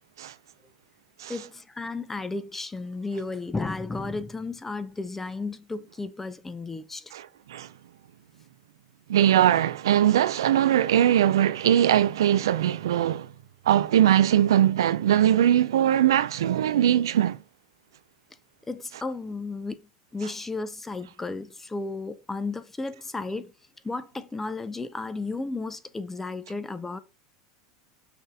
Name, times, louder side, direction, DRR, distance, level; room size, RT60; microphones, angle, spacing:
voice 1, 1.3-7.1 18.7-19.8 20.1-23.5 23.8-27.0, left 3 dB, 10° left, 0.5 m, -33 dB
voice 2, 7.1-7.7 9.1-13.3 13.7-17.4, right 11 dB, 85° right, 0.4 m, -21 dB
5.7 x 2.7 x 3.5 m
hypercardioid pair, 105°, 2 cm